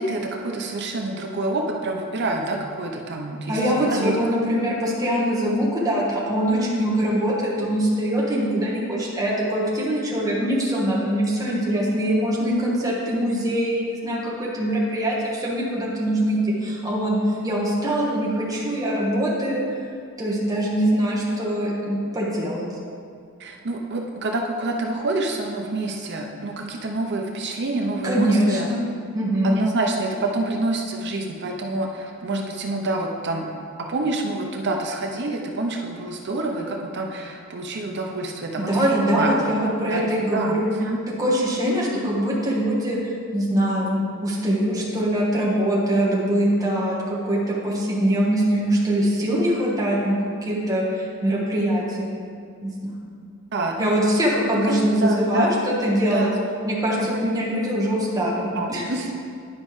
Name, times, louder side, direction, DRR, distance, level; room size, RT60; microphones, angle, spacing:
voice 1, 0.0-3.6 3.9-4.1 23.4-28.7 29.4-33.5 33.9-38.7 38.9-39.3 39.9-40.0 40.3-41.0 41.7-41.8 43.9-44.0 45.0-45.1 46.0-46.1 53.5-53.9 54.6-55.5 56.1-56.3 57.0-57.1 58.6-59.1, right 2 dB, 55° right, 2 dB, 0.6 m, -27 dB
voice 2, 3.5-19.6 20.2-22.7 28.0-28.8 29.1-29.6 38.7-40.7 41.2-43.0 43.3-50.1 50.4-52.1 52.6-52.9 53.8-56.3 56.6-58.9, right 1 dB, 15° right, -5 dB, 1.3 m, -23 dB
10.5 x 5.3 x 3.2 m, 2.2 s
head